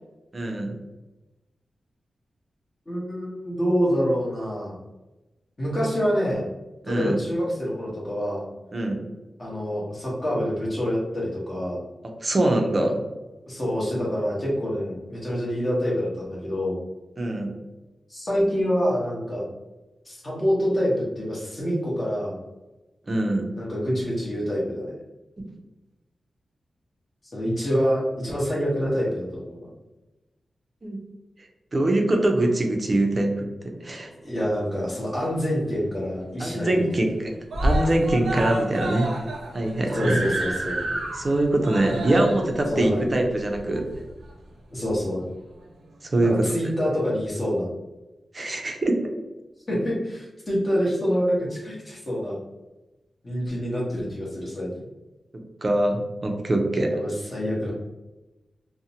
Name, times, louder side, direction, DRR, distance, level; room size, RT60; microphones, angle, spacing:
voice 1, 0.3-0.7 6.8-7.2 8.7-9.0 12.2-13.0 17.2-17.5 23.1-23.5 25.4-25.5 30.8-31.0 31.7-33.4 33.8-34.1 36.4-37.3 37.6-39.1 39.5-40.2 41.1-43.9 46.0-46.5 48.3-49.0 55.3-56.9, right 1 dB, 35° right, 2 dB, 0.4 m, -23 dB
voice 2, 2.9-4.8 5.6-6.4 6.9-8.5 9.4-11.8 13.5-16.8 18.1-19.4 20.1-22.4 23.5-24.9 27.3-29.7 34.2-37.0 39.9-41.0 42.7-43.0 44.7-45.2 46.2-47.7 49.7-52.4 53.2-54.7 56.9-57.7, equal, 30° left, -5 dB, 0.9 m, -26 dB
Screaming, 34.6-35.5 35.9-36.0 36.3-36.4 36.7-37.2 37.5-44.3 45.1-45.2, right 1 dB, 90° right, 0.5 m, -30 dB
2.5 x 2.0 x 2.7 m, 1.1 s
wide cardioid pair, 125°, 0 cm